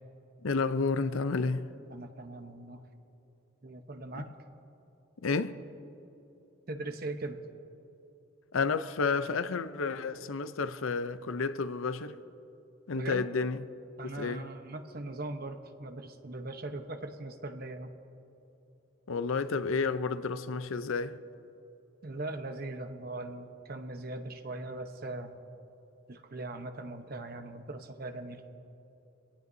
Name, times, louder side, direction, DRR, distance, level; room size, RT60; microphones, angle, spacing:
voice 1, 0.4-1.7 4.1-4.2 5.2-5.6 8.5-12.2 12.9-13.6 14.2-14.5 19.1-21.2, left 4 dB, 80° left, 0.6 m, -31 dB
voice 2, 1.9-2.8 3.6-4.3 6.7-7.4 12.9-13.3 14.0-17.9 22.0-25.4 26.1-28.4, right 2 dB, 45° right, 1.0 m, -40 dB
24.0 x 17.0 x 2.7 m
head